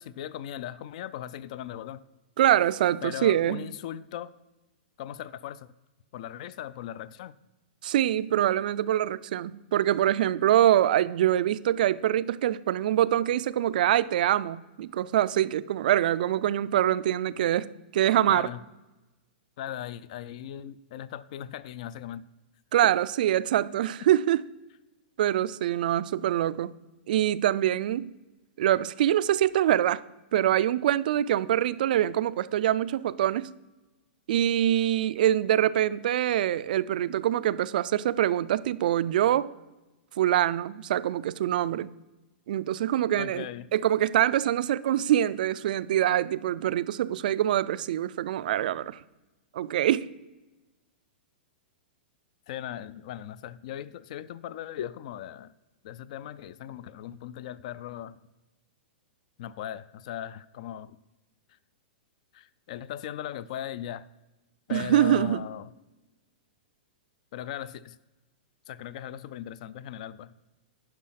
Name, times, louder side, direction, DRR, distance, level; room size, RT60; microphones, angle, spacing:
voice 1, 0.0-2.0 3.0-4.3 5.0-5.7 6.1-7.3 18.3-18.6 19.6-22.2 43.2-43.7 52.5-55.5 55.8-58.2 59.4-61.0 62.3-64.1 64.7-65.7 67.3-68.0 68.7-70.3, left 11 dB, 40° left, 0.3 m, -38 dB
voice 2, 2.4-3.7 7.8-18.5 22.7-24.4 25.2-26.7 27.1-28.1 28.6-30.0 30.3-33.5 34.3-39.5 40.2-41.9 42.5-43.5 43.7-49.0 49.5-50.1 64.7-65.4, right 12 dB, 50° right, 0.3 m, -24 dB
10.5 x 5.5 x 5.7 m
hypercardioid pair, 170°, 6 cm